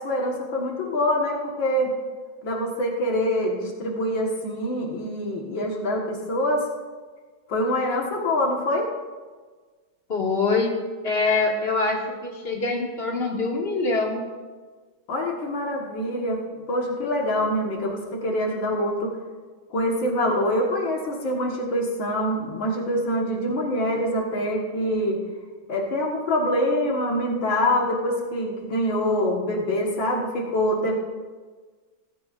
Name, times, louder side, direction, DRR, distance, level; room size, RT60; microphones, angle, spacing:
voice 1, 0.0-1.9 2.4-6.7 7.5-8.9 15.1-16.4 16.7-19.1 19.7-25.2 25.7-30.9, left 1 dB, 75° left, -1 dB, 2.3 m, -25 dB
voice 2, 10.1-10.7 11.0-14.2, left 3 dB, 30° left, -2 dB, 2.2 m, -24 dB
17.0 x 15.0 x 2.5 m, 1.4 s
omnidirectional pair, 2.1 m